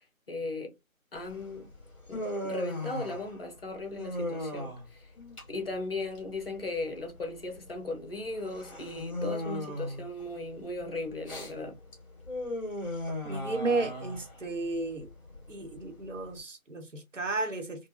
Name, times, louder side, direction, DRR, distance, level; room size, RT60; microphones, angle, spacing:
voice 1, 0.3-0.7 1.1-1.7 2.1-5.1 5.5-11.8, left 2 dB, 40° left, 0.9 m, -37 dB
Human voice, 1.2-16.4, left 1 dB, 25° left, 1.6 m, -38 dB
voice 2, 13.2-15.1 15.5-17.9, right 3 dB, 60° right, 1.0 m, -33 dB
3.7 x 2.2 x 2.5 m
figure-of-eight pair, 160°, 42 cm